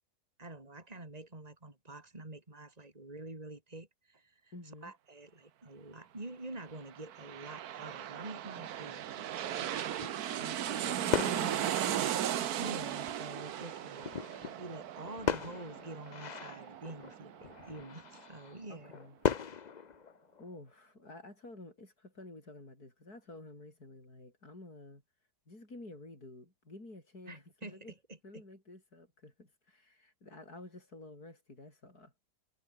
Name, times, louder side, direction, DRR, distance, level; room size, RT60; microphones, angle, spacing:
voice 1, 0.4-4.5 4.8-11.0 12.6-14.1 14.6-18.9 27.3-28.4, right 2 dB, 20° right, 3.9 m, -47 dB
voice 2, 4.5-4.9 10.9-12.1 12.4-12.7 18.7-19.2 20.4-25.0 25.5-27.9 28.2-32.1, left 2 dB, 65° left, 8.1 m, -50 dB
sound 1, 6.8-18.2 18.5-18.6, right 11 dB, 70° right, 1.4 m, -37 dB
sound 2, 9.5-11.9 12.5-12.6 12.9-20.7, left 6 dB, 45° left, 0.6 m, -39 dB
omnidirectional pair, 1.7 m